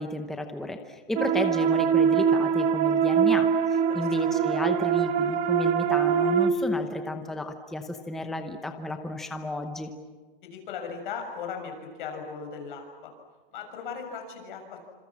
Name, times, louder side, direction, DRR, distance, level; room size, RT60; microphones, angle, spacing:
voice 1, 0.0-9.9, left 1 dB, ahead, 6 dB, 0.8 m, -33 dB
sound 1, 1.2-6.5, right 7 dB, 25° right, 1.4 m, -23 dB
voice 2, 3.7-4.3 10.4-11.7 12.0-13.1 13.5-14.8, left 6 dB, 55° left, 4 dB, 6.8 m, -38 dB
28.5 x 27.0 x 7.4 m, 1.4 s
supercardioid pair, 175°, 30 cm